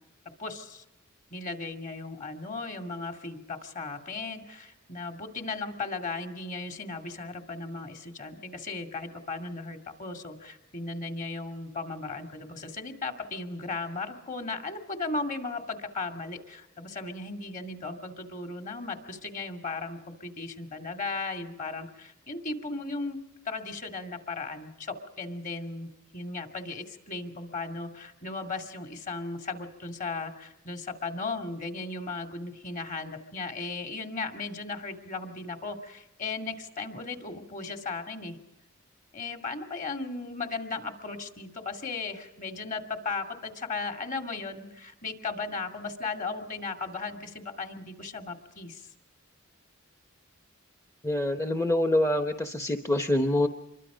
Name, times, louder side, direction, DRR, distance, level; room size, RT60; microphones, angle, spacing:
voice 1, 0.4-0.8 1.3-23.2 23.4-38.4 39.1-48.9, left 3 dB, 40° left, 5 dB, 2.4 m, -36 dB
voice 2, 51.0-53.5, left 1 dB, 15° left, 6 dB, 0.8 m, -25 dB
26.5 x 23.5 x 5.1 m, 0.93 s
head